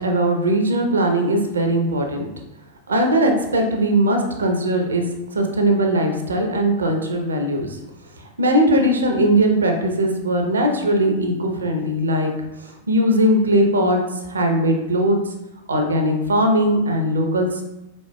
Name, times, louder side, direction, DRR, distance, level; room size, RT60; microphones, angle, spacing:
voice 1, 0.0-2.3 2.9-5.0 5.3-7.8 8.4-12.3 12.6-15.2 15.7-17.6, right 1 dB, 70° right, 3 dB, 0.6 m, -19 dB
4.2 x 4.2 x 2.2 m, 0.91 s
figure-of-eight pair, 90°, 0 cm